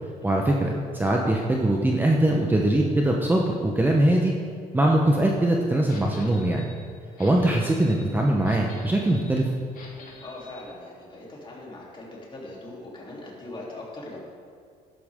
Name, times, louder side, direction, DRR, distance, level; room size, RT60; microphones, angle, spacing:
voice 1, 0.2-4.3 4.7-6.7 7.2-9.5, right 1 dB, 10° right, 0 dB, 0.9 m, -22 dB
sound 1, 5.9-10.7, left 3 dB, 55° left, 2.1 m, -47 dB
voice 2, 10.2-14.2, left 2 dB, 30° left, -4 dB, 3.3 m, -41 dB
11.5 x 11.5 x 3.7 m, 2.1 s
cardioid pair, 110°, 17 cm